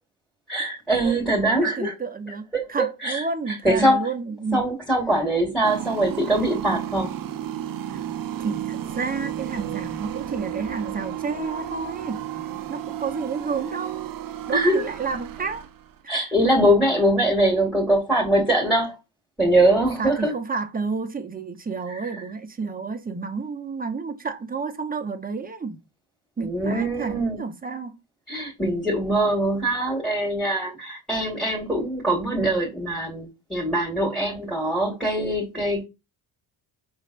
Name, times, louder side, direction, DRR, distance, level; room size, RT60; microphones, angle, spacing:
voice 1, 0.5-1.9 2.5-4.1 4.5-7.1 14.5-14.9 16.1-19.0 19.4-20.3 21.9-22.0 26.4-27.4 28.3-35.8, right 1 dB, ahead, 1.9 m, -22 dB
voice 2, 1.6-4.6 7.9-8.0 8.4-12.2 12.7-14.1 14.5-15.6 16.0-16.3 20.0-25.8 26.4-28.0, right 4 dB, 20° right, 0.9 m, -30 dB
sound 1, 5.6-16.0, right 11 dB, 45° right, 0.6 m, -33 dB
5.7 x 3.2 x 2.5 m
cardioid pair, 100°, 46 cm